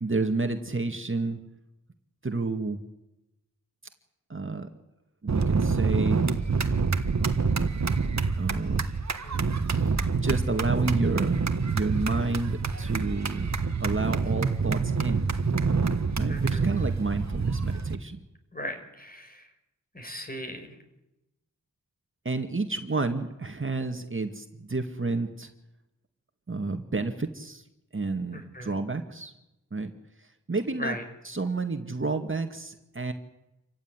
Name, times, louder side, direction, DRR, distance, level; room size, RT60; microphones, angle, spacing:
voice 1, 0.0-1.4 2.2-2.8 4.3-4.7 5.2-6.3 8.4-8.8 10.2-11.3 11.7-13.5 13.8-15.3 16.1-18.2 22.3-25.5 26.5-27.6 27.9-29.3 29.7-29.9 30.5-31.0 31.2-33.1, right 3 dB, 40° right, 6 dB, 2.1 m, -30 dB
sound 1, 5.3-18.0, right 4 dB, 55° right, 1.6 m, -26 dB
voice 2, 9.2-9.8 16.3-16.9 18.5-19.5 19.9-20.7 22.9-23.0 28.3-28.8 30.7-31.0, equal, 25° left, 6 dB, 5.1 m, -38 dB
28.0 x 15.5 x 9.7 m, 0.95 s
wide cardioid pair, 65°, 32 cm